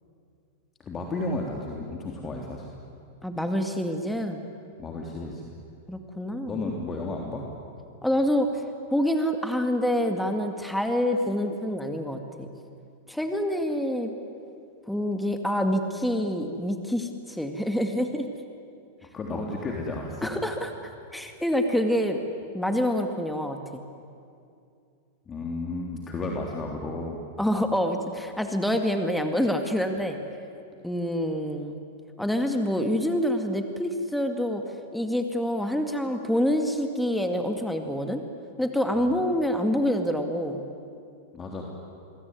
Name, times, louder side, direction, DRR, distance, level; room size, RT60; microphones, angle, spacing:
voice 1, 0.8-2.7 4.8-5.5 6.4-7.4 19.1-20.4 25.3-27.2 39.0-39.2 41.3-41.6, left 2 dB, 25° left, 0 dB, 3.3 m, -33 dB
voice 2, 3.2-4.4 5.9-6.6 8.0-8.6 8.9-12.5 13.1-14.1 14.9-18.2 20.2-20.7 21.1-22.2 22.5-23.8 27.4-30.2 30.8-31.8 32.2-34.6 34.9-38.2 38.6-40.6, equal, ahead, 5 dB, 2.1 m, -26 dB
26.5 x 22.0 x 9.7 m, 2.5 s
hypercardioid pair, 100°, 0 cm